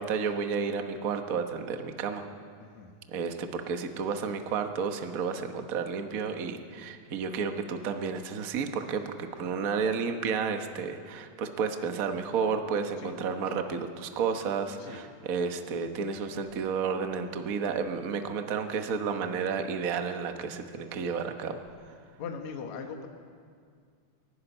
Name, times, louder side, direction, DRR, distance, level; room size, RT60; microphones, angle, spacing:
voice 1, 0.0-2.3 3.1-21.6, right 5 dB, 85° right, 6 dB, 0.7 m, -31 dB
voice 2, 2.6-2.9 13.0-13.1 14.8-15.0 22.2-23.1, left 5 dB, 70° left, 4 dB, 2.6 m, -39 dB
22.5 x 11.5 x 10.0 m, 2.1 s
omnidirectional pair, 3.4 m